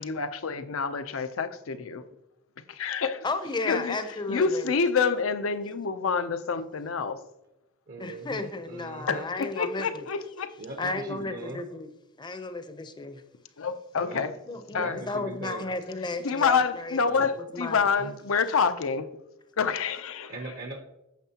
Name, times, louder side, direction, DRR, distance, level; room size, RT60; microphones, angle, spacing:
voice 1, 0.0-2.0 2.7-3.2 3.7-4.0 4.3-7.2 9.1-10.5 13.6-14.3 14.7-15.0 16.2-19.1 19.6-20.3, left 5 dB, 75° left, 0.6 m, -27 dB
voice 2, 3.2-4.7 8.0-10.1 10.8-11.9 12.2-13.2 14.1-17.8, left 3 dB, 20° left, 0.6 m, -34 dB
voice 3, 7.9-9.3 10.6-11.6 14.0-14.3 14.7-15.7 17.0-17.2 18.0-18.2 20.3-20.8, right 2 dB, 50° right, 0.8 m, -39 dB
9.3 x 6.9 x 2.9 m
head